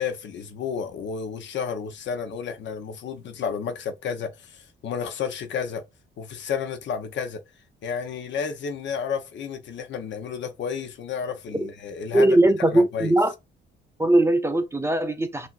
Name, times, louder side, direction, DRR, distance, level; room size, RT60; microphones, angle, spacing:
voice 1, 0.0-5.8 6.2-7.4 7.8-12.3 12.7-13.1, left 6 dB, 65° left, 0.9 m, -31 dB
voice 2, 12.1-13.3 14.0-15.5, right 1 dB, 15° right, 0.6 m, -20 dB
5.9 x 2.7 x 2.5 m
cardioid pair, 90°, 20 cm